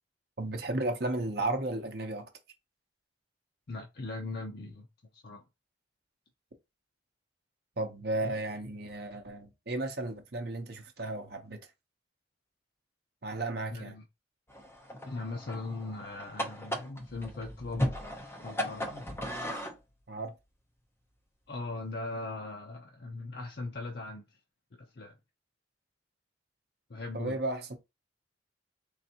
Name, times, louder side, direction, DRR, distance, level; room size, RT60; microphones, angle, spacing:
voice 1, 0.4-2.3 7.8-11.6 13.2-13.9 20.1-20.4 27.1-27.7, right 2 dB, 55° right, 0.7 m, -34 dB
voice 2, 3.7-4.9 5.1-5.4 13.7-14.0 15.1-18.0 18.4-19.1 21.5-24.4 24.8-25.2 26.9-27.4, left 2 dB, 55° left, 0.6 m, -39 dB
sound 1, 14.5-19.8, equal, 10° left, 0.6 m, -36 dB
3.9 x 3.2 x 2.8 m
head